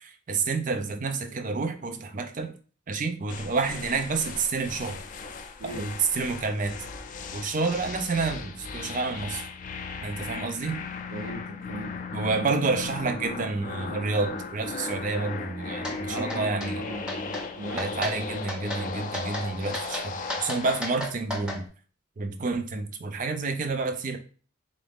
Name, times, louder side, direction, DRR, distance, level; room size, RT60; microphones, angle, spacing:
voice 1, 0.0-2.5 2.9-5.0 5.6-6.7 7.3-9.5 10.0-10.8 12.1-16.8 17.8-21.7 22.2-24.2, right 4 dB, 40° right, 7 dB, 0.4 m, -29 dB
sound 1, 3.3-21.0, left 4 dB, 40° left, 0.4 m, -37 dB
voice 2, 11.1-12.1 12.3-12.5 16.1-18.1, right 1 dB, 85° right, -1 dB, 0.7 m, -38 dB
sound 2, 15.8-16.0 16.3-16.7 17.1-17.4 17.8-18.2 18.5-18.8 19.1-19.5 19.7-21.6, left 1 dB, 5° right, 0.7 m, -33 dB
4.0 x 2.6 x 3.4 m, 0.41 s
head